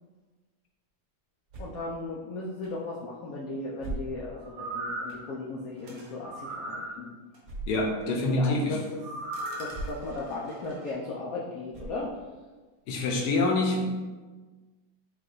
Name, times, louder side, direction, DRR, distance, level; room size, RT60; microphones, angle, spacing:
sound 1, 1.5-1.9 2.6-2.7 3.8-4.5 5.1-5.2 7.4-7.9 8.5-8.6 9.7-10.1 10.6-10.7 11.7-12.3, right 2 dB, 40° right, 1.6 m, -39 dB
voice 1, 1.6-7.1 8.2-9.0 9.6-12.1, left 2 dB, 85° left, -5 dB, 0.7 m, -36 dB
sound 2, 4.4-5.2 6.2-6.9 9.0-9.7 10.2-10.3, right 2 dB, 90° right, 1.6 m, -36 dB
sound 3, 5.8-6.2 7.3-7.4 8.0-8.1 9.3-10.9, right 3 dB, 70° right, 1.5 m, -50 dB
voice 2, 7.7-8.8 12.9-13.8, left 2 dB, 65° left, 0 dB, 1.0 m, -26 dB
4.7 x 2.4 x 3.9 m, 1.3 s
omnidirectional pair, 2.2 m